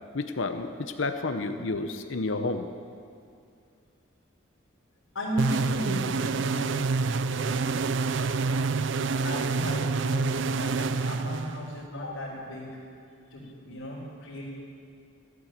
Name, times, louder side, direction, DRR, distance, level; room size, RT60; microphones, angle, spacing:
voice 1, 0.1-2.6 12.1-12.2, left 3 dB, 70° left, 7 dB, 0.8 m, -30 dB
voice 2, 5.1-6.8 7.3-7.8 9.2-13.0 13.3-14.4, equal, 90° left, -7 dB, 3.7 m, -35 dB
sound 1, 5.4-11.9, right 4 dB, 65° right, 0.4 m, -27 dB
13.5 x 13.0 x 7.5 m, 2.4 s
head